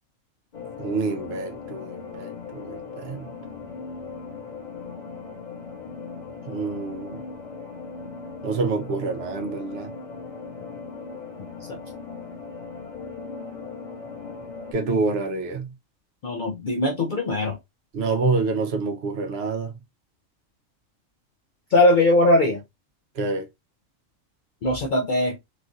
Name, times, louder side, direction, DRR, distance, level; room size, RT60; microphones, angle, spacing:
sound 1, 0.5-14.7, left 4 dB, 35° left, 1.1 m, -38 dB
voice 1, 0.8-3.3 6.5-7.2 8.4-9.9 14.7-15.7 17.9-19.7 23.2-23.5, right 4 dB, 60° right, 0.8 m, -27 dB
voice 2, 16.2-17.6 21.7-22.6 24.6-25.4, left 1 dB, 65° left, 0.4 m, -20 dB
3.1 x 2.5 x 2.4 m
omnidirectional pair, 1.3 m